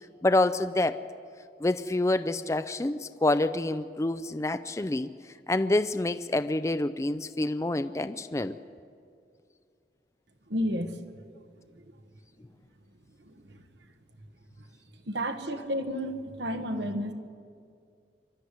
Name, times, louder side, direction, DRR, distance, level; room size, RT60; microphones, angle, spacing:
voice 1, 0.2-1.0 1.6-5.1 5.5-8.6, left 2 dB, 15° left, 12 dB, 0.4 m, -27 dB
voice 2, 10.5-10.9 11.7-11.8 13.2-13.6 15.1-17.1, equal, 85° right, 7 dB, 1.5 m, -32 dB
25.0 x 12.0 x 9.9 m, 2.3 s
head